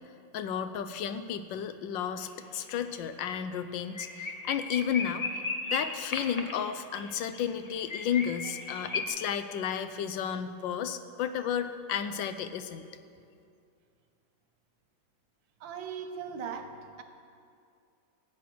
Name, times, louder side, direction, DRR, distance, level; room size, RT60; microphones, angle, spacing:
voice 1, 0.3-5.3 5.7-12.8, left 8 dB, 90° left, 10 dB, 1.4 m, -32 dB
sound 1, 2.2-2.6 2.8-3.0 3.4-3.5 3.7-9.0, left 3 dB, 60° left, 0.4 m, -36 dB
voice 2, 15.6-17.0, right 6 dB, 85° right, 6 dB, 1.7 m, -39 dB
14.0 x 8.8 x 6.1 m, 2.5 s
omnidirectional pair, 2.0 m